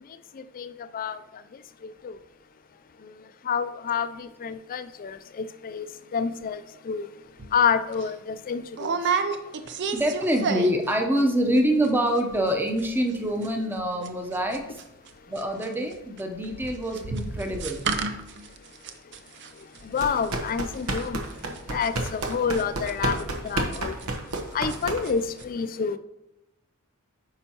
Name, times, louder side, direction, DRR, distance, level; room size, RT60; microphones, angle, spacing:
voice 1, 0.1-2.2 3.0-3.1 3.4-5.9 6.1-7.1 7.5-9.3 19.6-24.0 24.5-26.0, left 6 dB, 40° left, 13 dB, 0.4 m, -29 dB
sound 1, 7.4-7.6 7.9-8.1 8.8-10.9 11.2-11.6 11.8-11.9 12.2-12.5 12.8-15.1 15.4-24.4 24.7-25.1 25.4-25.5, right 5 dB, 55° right, 0.6 m, -32 dB
voice 2, 9.9-14.8 15.3-17.9, equal, 10° right, 3 dB, 0.8 m, -25 dB
sound 2, 19.9-25.3, right 2 dB, 90° right, 1.0 m, -31 dB
8.7 x 5.5 x 2.9 m, 0.90 s
head